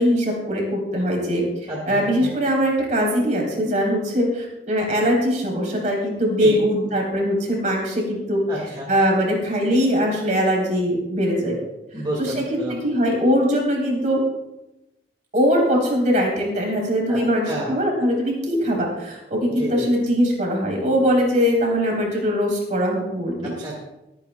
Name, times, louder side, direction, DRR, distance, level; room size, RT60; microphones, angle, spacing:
voice 1, 0.0-8.4 8.9-11.6 12.0-12.4 12.8-14.2 15.3-23.5, equal, 45° right, -1 dB, 3.6 m, -21 dB
voice 2, 1.7-2.3 6.4-6.6 8.5-8.9 11.9-12.8 17.1-17.2 17.5-17.7 19.6-19.9 23.4-23.8, right 1 dB, 25° right, -4 dB, 2.0 m, -29 dB
23.5 x 9.2 x 2.3 m, 0.96 s
head